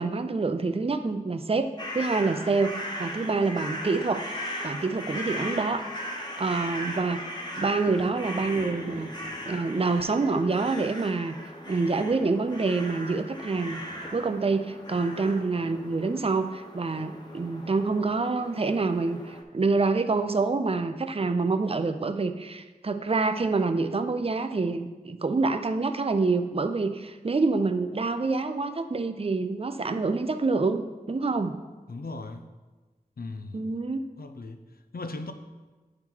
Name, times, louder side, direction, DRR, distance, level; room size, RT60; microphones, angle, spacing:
voice 1, 0.0-1.7 1.9-4.3 4.6-5.9 6.4-7.2 7.6-9.1 9.5-11.4 11.7-13.8 14.1-31.5 33.5-34.0, right 3 dB, 40° right, 8 dB, 0.5 m, -27 dB
sound 1, 1.8-19.4, equal, 30° left, 1.4 m, -38 dB
voice 2, 31.9-32.4 33.2-33.7 34.2-34.6 34.9-35.3, left 3 dB, 70° left, 8 dB, 0.6 m, -37 dB
9.7 x 3.9 x 4.5 m, 1.3 s
wide cardioid pair, 50°, 16 cm